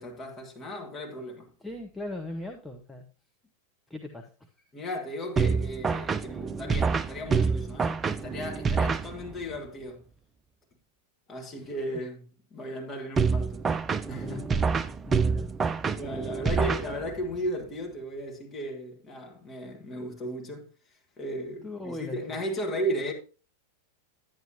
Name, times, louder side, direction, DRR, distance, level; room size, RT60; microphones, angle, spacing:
voice 1, 0.0-1.5 4.7-10.0 11.3-12.2 12.5-13.7 14.1-14.4 15.9-20.7 21.2-23.1, equal, 25° left, 2.0 m, -35 dB
voice 2, 1.6-3.1 3.9-4.5 6.2-6.3 6.8-6.9 7.3-7.5 11.6-11.7 14.2-14.6 15.1-15.5 21.6-22.4, left 2 dB, 5° left, 0.9 m, -40 dB
sound 1, 5.4-9.6 13.2-17.4, right 5 dB, 20° right, 0.4 m, -27 dB
10.5 x 9.5 x 2.8 m
figure-of-eight pair, 90°, 0 cm